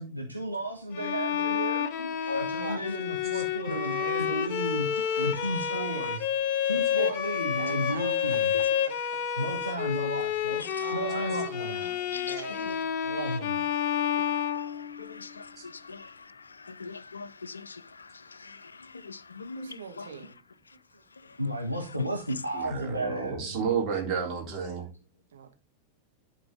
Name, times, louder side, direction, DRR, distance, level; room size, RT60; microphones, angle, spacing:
voice 1, 0.0-1.9 2.3-4.9 5.2-6.3 6.6-8.5 9.4-10.6 10.9-11.9 13.0-13.7 21.4-23.6, right 1 dB, 90° right, 1.1 m, -33 dB
Bowed string instrument, 0.9-15.2, left 8 dB, 45° left, 0.7 m, -30 dB
voice 2, 2.4-3.0 7.0-7.1 7.6-8.4 10.8-13.0 19.5-20.4 25.3-25.5, right 7 dB, 65° right, 1.4 m, -42 dB
voice 3, 14.3-14.7 15.0-16.1 16.7-17.8 18.4-18.6 19.0-19.8, left 4 dB, 75° left, 0.5 m, -40 dB
voice 4, 22.5-24.9, right 6 dB, 35° right, 3.3 m, -31 dB
11.0 x 4.6 x 3.5 m
figure-of-eight pair, 90°, 0 cm